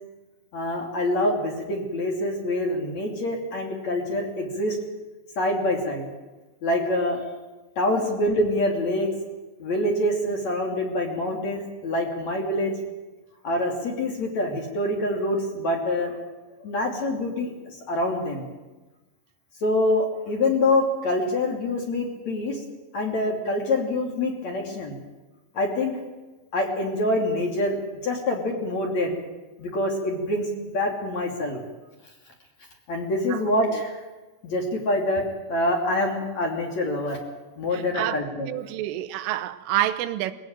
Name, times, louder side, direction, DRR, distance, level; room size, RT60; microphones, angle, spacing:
voice 1, 0.5-4.8 5.4-6.1 6.6-7.2 7.8-9.1 9.6-12.8 13.4-16.2 16.6-17.5 17.9-18.5 19.6-22.6 22.9-25.0 25.5-26.0 26.5-29.2 29.6-31.6 32.9-34.0 34.4-35.2 35.5-37.2 37.6-38.5, left 1 dB, 40° left, 3.5 m, -25 dB
voice 2, 37.7-40.3, right 13 dB, 85° right, 3.4 m, -28 dB
23.0 x 16.5 x 9.1 m
omnidirectional pair, 5.7 m